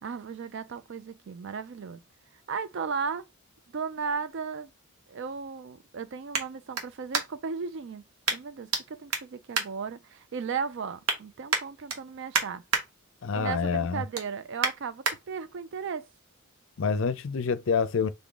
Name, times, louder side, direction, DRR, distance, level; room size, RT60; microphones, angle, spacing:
voice 1, 0.0-2.0 2.5-3.3 3.7-4.7 5.1-8.0 8.3-12.6 13.3-16.1, right 5 dB, 55° right, 0.4 m, -35 dB
sound 1, 3.5-7.6 8.2-8.8 9.1-10.4 10.8-11.2 11.5-12.8 13.3-13.5 13.9-15.2 15.7-15.8, right 4 dB, 80° right, 1.2 m, -31 dB
voice 2, 13.2-14.0 16.8-18.1, left 5 dB, 60° left, 0.5 m, -27 dB
3.8 x 3.6 x 3.8 m
head